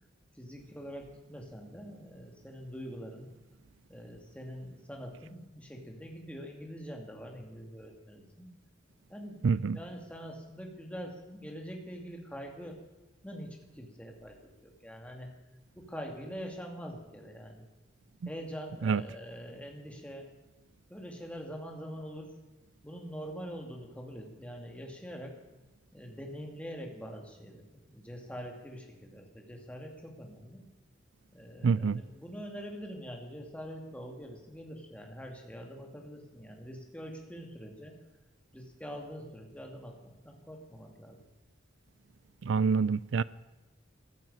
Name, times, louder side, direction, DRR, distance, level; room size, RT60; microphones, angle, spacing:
voice 1, 0.3-3.3 3.9-8.5 9.1-12.8 13.2-14.4 14.6-15.3 15.7-17.7 18.3-20.3 20.9-22.3 22.8-25.4 25.9-30.7 31.3-38.0 38.5-41.2, equal, 5° left, 2.4 m, -44 dB
voice 2, 9.4-9.8 18.8-19.0 31.6-32.0 42.4-43.2, right 5 dB, 75° right, 0.4 m, -26 dB
15.0 x 11.0 x 8.7 m
head